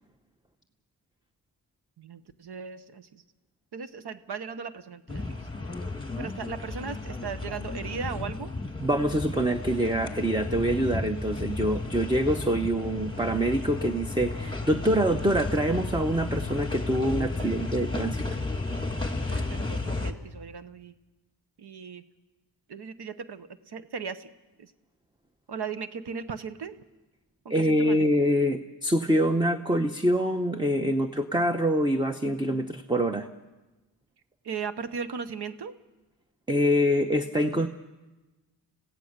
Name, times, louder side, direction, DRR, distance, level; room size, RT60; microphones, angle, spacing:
voice 1, 2.0-3.2 3.7-5.7 6.2-8.5 17.4-17.5 19.3-20.9 21.6-22.0 22.7-24.3 24.6-24.7 25.5-26.8 27.4-28.0 34.4-35.8, right 6 dB, 75° right, 12 dB, 1.0 m, -37 dB
sound 1, 5.1-20.1, left 3 dB, 10° left, 1.8 m, -33 dB
voice 2, 8.8-18.2 27.5-33.3 36.5-37.7, equal, 10° right, 6 dB, 0.9 m, -25 dB
27.0 x 16.0 x 6.7 m, 1.1 s
wide cardioid pair, 85°, 40 cm